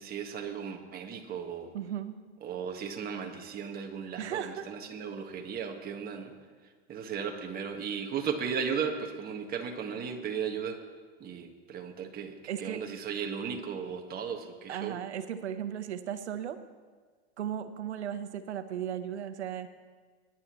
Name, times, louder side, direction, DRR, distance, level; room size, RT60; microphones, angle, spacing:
voice 1, 0.0-1.7 2.4-6.3 6.6-10.8 11.2-15.0, right 7 dB, 30° right, 3 dB, 1.6 m, -36 dB
voice 2, 1.7-2.2 4.2-4.7 12.5-12.8 14.7-16.6 17.4-19.7, right 9 dB, 90° right, 11 dB, 1.0 m, -36 dB
20.5 x 10.5 x 3.1 m, 1.5 s
hypercardioid pair, 120°, 33 cm